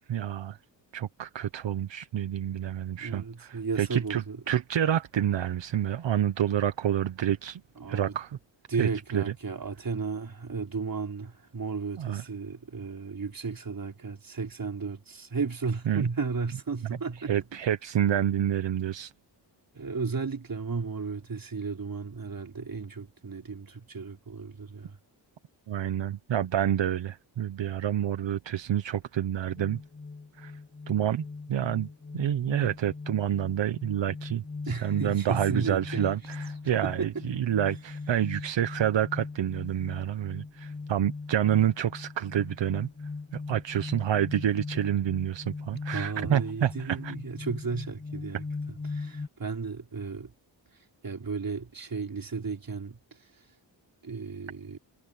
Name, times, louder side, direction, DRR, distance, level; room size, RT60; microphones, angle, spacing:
voice 1, 0.1-0.6 0.9-7.6 7.9-8.4 8.8-9.3 12.0-12.2 15.9-16.0 17.3-19.1 25.7-29.8 30.4-30.6 30.9-31.9 32.1-42.9 43.3-47.1, right 10 dB, 75° right, 1.0 m, -28 dB
voice 2, 3.0-4.4 7.8-8.2 8.7-17.6 19.7-25.0 34.7-36.2 36.6-37.2 45.9-48.4 48.9-50.3 51.0-53.0 54.0-54.8, right 4 dB, 50° right, 4.0 m, -34 dB
sound 1, 29.6-49.3, left 4 dB, 25° left, 1.2 m, -40 dB
cardioid pair, 70°, 45 cm